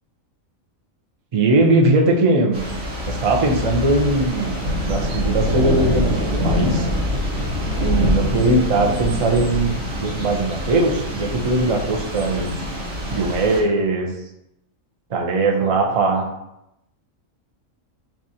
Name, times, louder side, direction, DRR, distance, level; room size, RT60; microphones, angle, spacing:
voice 1, 1.3-2.6 3.0-4.5 4.8-6.9 7.8-9.7 10.0-12.5 13.1-14.1 15.1-16.3, right 2 dB, 55° right, 0 dB, 0.3 m, -20 dB
Thunder / Rain, 2.5-13.6, left 1 dB, 75° right, 1.4 m, -24 dB
5.8 x 2.4 x 2.8 m, 0.85 s
omnidirectional pair, 1.4 m